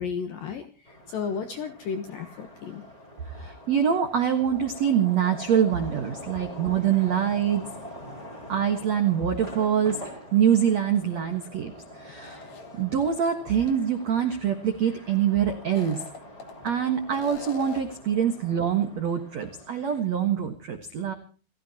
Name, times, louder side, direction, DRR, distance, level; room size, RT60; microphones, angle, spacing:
voice 1, 0.0-2.8, left 6 dB, 75° left, 8 dB, 2.1 m, -33 dB
sound 1, 0.9-20.0, equal, 10° left, 4.8 m, -44 dB
voice 2, 3.3-7.6 8.5-10.0 10.3-12.4 12.8-16.0 16.6-21.1, right 8 dB, 85° right, 6 dB, 1.5 m, -25 dB
sound 2, 12.2-13.3 13.7-13.8 15.6-16.7 17.1-18.0, left 5 dB, 45° left, 2.7 m, -42 dB
29.5 x 15.5 x 2.9 m, 0.40 s
omnidirectional pair, 5.7 m